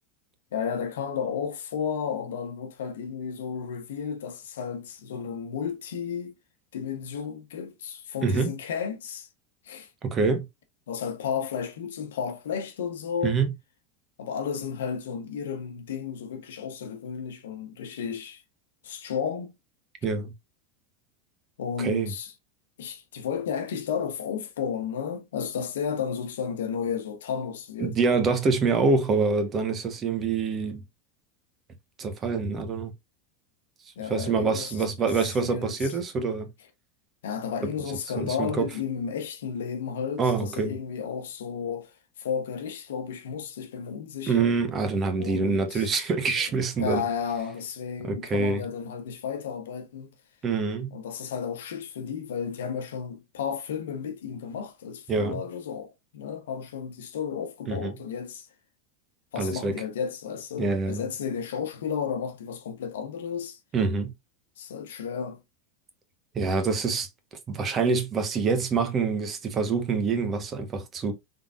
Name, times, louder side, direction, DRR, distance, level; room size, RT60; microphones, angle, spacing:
voice 1, 0.5-6.3 6.7-9.3 9.6-9.9 10.9-13.4 14.2-18.4 18.8-19.5 21.6-22.3 22.8-27.9 34.0-35.9 37.2-41.9 42.2-44.5 45.2-46.0 46.4-46.5 46.8-50.1 50.9-58.5 59.3-63.6 64.6-65.4, left 7 dB, 85° left, 0.9 m, -33 dB
voice 2, 8.2-8.5 10.0-10.5 13.2-13.5 20.0-20.3 21.8-22.1 27.8-30.8 32.0-32.9 34.1-36.5 38.2-38.6 40.2-40.7 44.2-47.0 48.0-48.6 50.4-50.9 55.1-55.4 57.7-57.9 59.4-59.8 60.6-61.0 63.7-64.1 66.3-67.1 67.5-71.1, right 4 dB, 30° right, 1.1 m, -26 dB
3.8 x 3.4 x 2.4 m
supercardioid pair, 120°, 0 cm